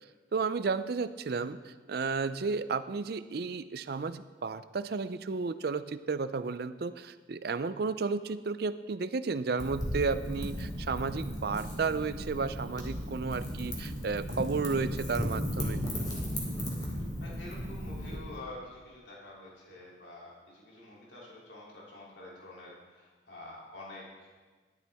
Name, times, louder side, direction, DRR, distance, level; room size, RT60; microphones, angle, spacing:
voice 1, 0.3-15.8, right 4 dB, 55° right, 13 dB, 0.4 m, -33 dB
Wind / Fire, 9.6-18.2, equal, 20° left, 2.2 m, -35 dB
voice 2, 17.2-24.3, left 2 dB, 65° left, -5 dB, 3.0 m, -48 dB
12.5 x 12.0 x 3.5 m, 1.4 s
head